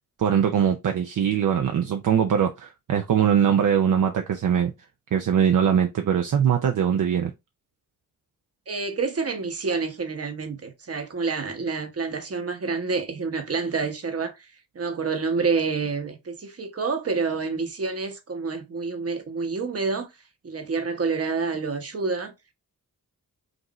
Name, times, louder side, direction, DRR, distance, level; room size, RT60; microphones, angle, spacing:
voice 1, 0.2-4.7 5.1-7.3, right 8 dB, 60° right, 0.6 m, -22 dB
voice 2, 8.7-14.5 14.7-20.1 20.4-22.3, right 4 dB, 40° right, 1.0 m, -28 dB
5.2 x 2.5 x 3.0 m
wide cardioid pair, 85°, 35 cm